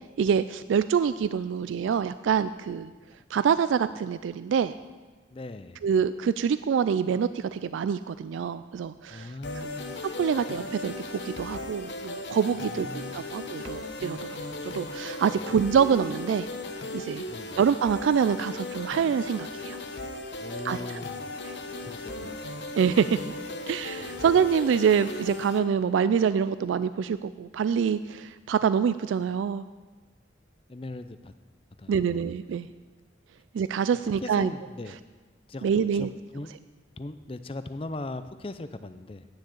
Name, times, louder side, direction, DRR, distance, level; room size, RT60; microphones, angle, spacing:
voice 1, 0.2-2.9 3.3-4.7 5.8-9.3 10.2-14.4 14.6-16.5 16.9-17.2 17.6-19.8 20.6-20.8 21.4-21.6 22.7-23.2 23.7-29.6 31.9-32.7 33.5-34.5 35.6-36.1, right 7 dB, 85° right, 14 dB, 0.3 m, -25 dB
voice 2, 5.3-5.8 9.1-10.0 12.5-13.3 17.3-17.6 20.4-21.3 21.8-22.4 24.0-24.2 30.7-31.3 31.8-32.1 32.5-32.6 34.0-35.0 35.5-36.5 37.0-39.3, left 2 dB, 30° left, 11 dB, 0.5 m, -39 dB
sound 1, 9.4-25.6, left 2 dB, 65° left, 1.0 m, -37 dB
9.8 x 6.3 x 8.6 m, 1.3 s
head